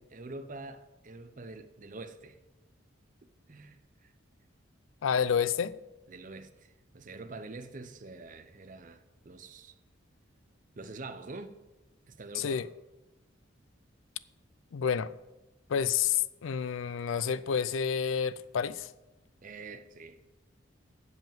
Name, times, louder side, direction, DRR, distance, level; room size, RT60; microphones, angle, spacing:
voice 1, 0.0-2.4 3.5-4.1 6.1-9.7 10.8-11.5 12.1-12.7 19.4-20.2, right 3 dB, 40° right, 0.6 m, -45 dB
voice 2, 5.0-5.8 12.3-12.7 14.7-15.1 15.7-18.9, left 7 dB, 75° left, 0.4 m, -29 dB
8.0 x 7.4 x 7.3 m
head